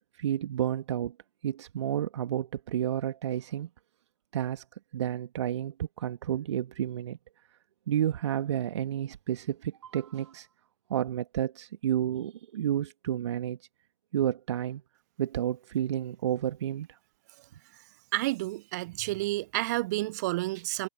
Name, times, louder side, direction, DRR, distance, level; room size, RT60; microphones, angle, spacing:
voice 1, 0.1-1.1 1.4-3.7 4.3-4.6 4.9-7.2 7.9-10.5 10.9-13.6 14.1-14.8 15.2-17.0, right 10 dB, 45° right, 1.6 m, -31 dB
voice 2, 18.1-20.9, right 20 dB, 25° right, 0.6 m, -30 dB
figure-of-eight pair, 130°, 20 cm